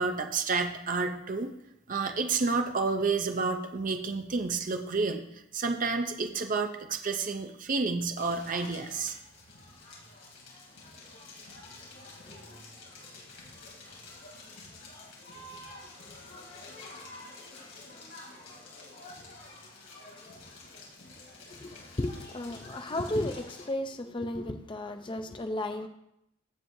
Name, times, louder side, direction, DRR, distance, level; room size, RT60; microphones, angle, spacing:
voice 1, 0.0-1.5 1.9-5.2 5.5-9.2, right 4 dB, 40° right, 5 dB, 0.6 m, -30 dB
Crackle, 8.2-23.6, left 2 dB, 60° left, 3.0 m, -48 dB
voice 2, 21.5-25.9, left 1 dB, 25° left, 6 dB, 0.5 m, -34 dB
15.5 x 6.2 x 2.7 m, 0.81 s
head